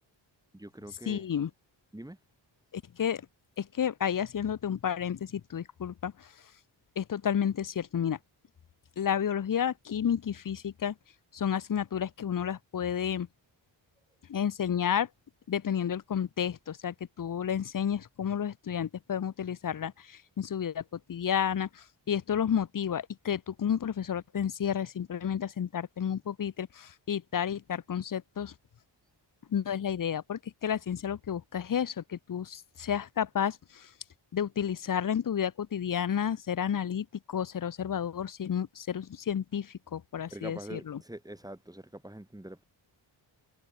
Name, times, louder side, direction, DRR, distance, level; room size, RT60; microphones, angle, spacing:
voice 1, 0.5-1.2 1.9-2.2 40.3-42.6, right 1 dB, 10° right, 7.6 m, -44 dB
voice 2, 1.1-1.5 2.7-3.3 3.6-6.3 7.0-8.2 9.0-10.9 11.3-13.3 14.3-15.1 15.5-28.5 29.5-33.9 34.3-41.0, left 8 dB, 45° left, 0.9 m, -31 dB
wide cardioid pair, 140°, 47 cm